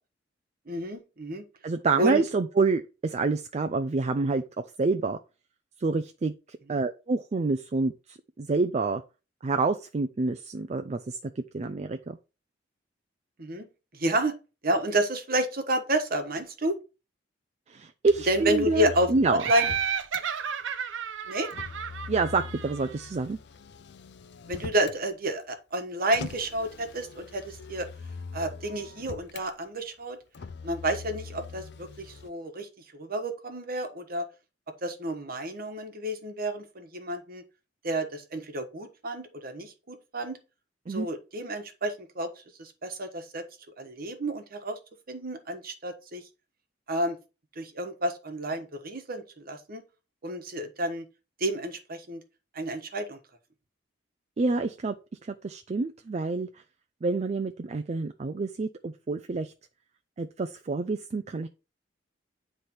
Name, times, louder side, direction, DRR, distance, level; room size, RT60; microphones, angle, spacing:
voice 1, 0.7-1.5 2.0-2.2 6.7-6.8 13.4-13.7 13.9-14.3 14.6-16.8 18.3-19.7 21.3-21.5 24.5-27.9 28.3-30.2 30.6-34.2 34.8-37.4 37.8-40.4 40.9-43.4 43.8-44.8 45.1-46.2 46.9-47.2 47.6-49.8 50.2-51.0 51.4-52.2 52.5-53.2, right 1 dB, 50° right, 6 dB, 1.2 m, -30 dB
voice 2, 1.6-4.4 4.8-5.2 5.8-9.0 9.4-12.2 17.7-19.4 22.1-23.4 40.9-41.1 54.4-54.9 55.3-56.5 57.0-59.5 60.2-61.5, right 3 dB, 35° right, 8 dB, 0.4 m, -28 dB
Motor vehicle (road), 18.1-20.2 21.4-25.0 26.1-29.5 30.3-32.3, left 5 dB, 65° left, 0.5 m, -42 dB
Laughter, 19.4-23.0, right 7 dB, 80° right, 0.6 m, -32 dB
9.5 x 3.3 x 4.3 m, 0.31 s
head